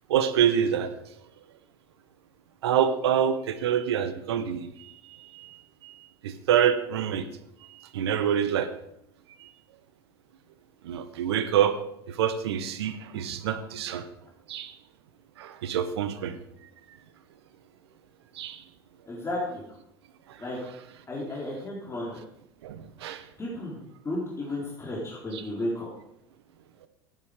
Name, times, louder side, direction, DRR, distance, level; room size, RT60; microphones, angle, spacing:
voice 1, 0.1-0.9 2.6-5.6 5.8-6.0 6.2-7.2 7.7-8.7 9.4-9.5 10.8-11.8 12.1-14.0 14.5-14.7 15.4-16.4 18.4-18.6 22.6-23.2 25.3-25.4, right 9 dB, 80° right, 11 dB, 1.1 m, -26 dB
voice 2, 19.1-19.6 20.4-20.7 21.1-22.2 23.4-23.8 24.0-25.9, left 1 dB, 20° left, -5 dB, 3.9 m, -33 dB
12.5 x 9.9 x 5.0 m, 0.78 s
hypercardioid pair, 80°, 13 cm